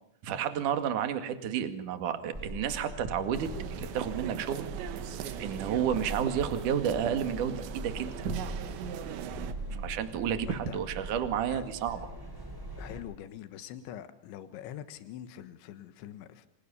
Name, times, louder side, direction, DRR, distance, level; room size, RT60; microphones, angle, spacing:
voice 1, 0.2-3.5 3.8-4.7 4.9-5.0 5.4-8.3 9.7-12.0, right 8 dB, 50° right, 8 dB, 3.1 m, -31 dB
sound 1, 2.3-13.0, right 1 dB, 5° right, 5.7 m, -41 dB
sound 2, 3.3-9.5, right 10 dB, 80° right, 3.7 m, -40 dB
voice 2, 9.7-10.0 10.4-10.8 11.5-11.6 12.8-16.5, left 11 dB, 85° left, 11 dB, 3.7 m, -44 dB
29.5 x 26.5 x 7.0 m, 0.70 s
omnidirectional pair, 5.2 m